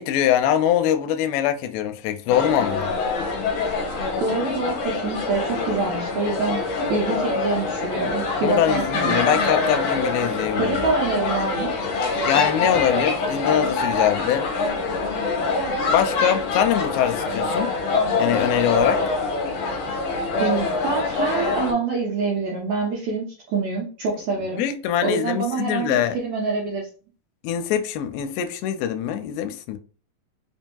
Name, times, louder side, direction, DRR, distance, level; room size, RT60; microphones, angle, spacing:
voice 1, 0.0-2.9 8.4-10.7 12.3-14.5 15.9-17.8 18.2-19.0 24.5-26.2 27.4-29.8, left 10 dB, 85° left, 2.3 m, -23 dB
sound 1, 2.3-21.7, left 3 dB, 65° left, 2.2 m, -25 dB
voice 2, 4.2-9.4 10.6-11.8 20.4-24.6 25.0-26.9, right 3 dB, 75° right, 1.7 m, -26 dB
5.5 x 2.6 x 2.2 m
omnidirectional pair, 4.2 m